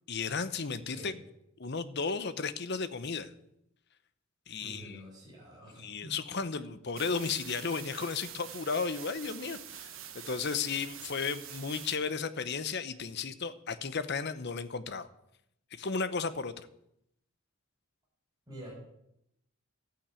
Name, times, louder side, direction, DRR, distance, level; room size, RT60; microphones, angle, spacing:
voice 1, 0.1-1.1 1.6-3.3 4.5-5.0 5.8-15.1 15.7-16.7, left 5 dB, 50° left, 13 dB, 0.8 m, -34 dB
voice 2, 4.6-6.2 18.5-18.7, right 1 dB, 15° right, -3 dB, 7.2 m, -47 dB
sound 1, 7.0-12.0, right 10 dB, 60° right, 1.4 m, -46 dB
13.0 x 8.9 x 8.4 m, 0.80 s
head